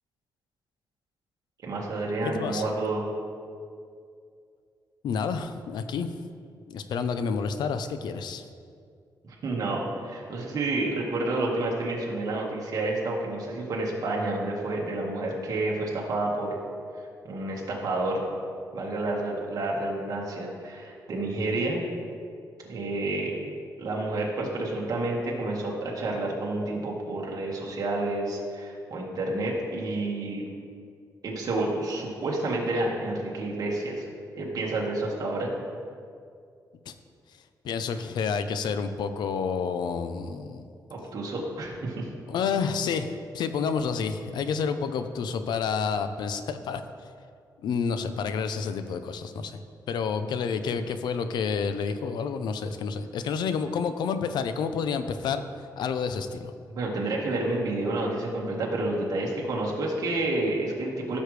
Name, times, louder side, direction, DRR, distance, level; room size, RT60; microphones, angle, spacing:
voice 1, 1.6-3.0 9.2-16.6 17.2-18.2 18.7-21.8 22.7-23.4 23.8-30.4 31.2-34.1 34.4-35.5 40.9-42.1 56.7-61.2, right 2 dB, 55° right, -3 dB, 1.7 m, -29 dB
voice 2, 2.2-2.7 5.0-6.1 6.7-8.4 36.9-37.0 37.6-40.6 42.3-46.8 47.6-49.6 49.9-55.4 55.8-56.5, left 6 dB, 85° left, 10 dB, 0.6 m, -29 dB
15.0 x 6.4 x 3.3 m, 2.3 s
wide cardioid pair, 150°, 7 cm